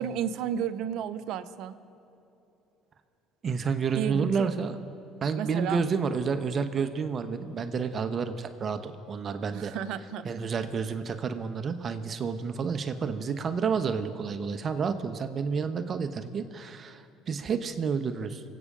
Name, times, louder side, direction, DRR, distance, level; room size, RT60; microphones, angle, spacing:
voice 1, 0.0-1.7 3.9-4.5 5.4-5.8 9.5-10.3, right 9 dB, 70° right, 11 dB, 0.7 m, -32 dB
voice 2, 3.4-4.7 5.2-9.7 10.2-18.4, right 5 dB, 40° right, 9 dB, 1.0 m, -30 dB
25.0 x 8.6 x 5.0 m, 2.9 s
supercardioid pair, 80°, 0 cm